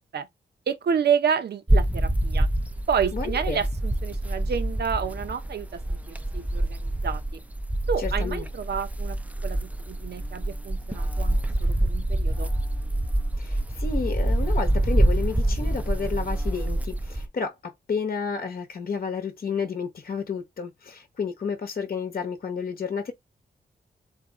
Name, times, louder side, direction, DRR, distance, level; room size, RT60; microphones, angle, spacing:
voice 1, 0.7-2.5 2.9-7.4 7.9-9.2 9.4-12.5, right 7 dB, 65° right, 0.8 m, -29 dB
sound 1, 1.7-17.3, right 1 dB, 10° right, 0.5 m, -26 dB
voice 2, 3.1-3.6 8.0-8.5 13.4-23.1, left 5 dB, 55° left, 0.9 m, -31 dB
4.0 x 2.7 x 3.6 m
cardioid pair, 100°, 18 cm